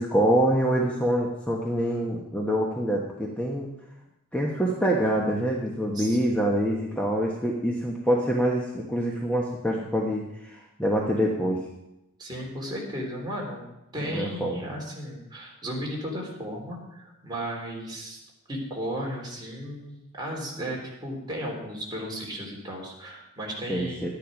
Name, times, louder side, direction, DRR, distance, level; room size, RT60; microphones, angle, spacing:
voice 1, 0.0-3.7 4.3-11.6 14.0-14.6 23.7-24.1, equal, 5° left, -2 dB, 1.1 m, -25 dB
voice 2, 12.2-13.6 13.9-18.2 18.5-24.1, equal, 20° right, -2 dB, 3.3 m, -35 dB
12.5 x 10.0 x 5.2 m, 0.91 s
head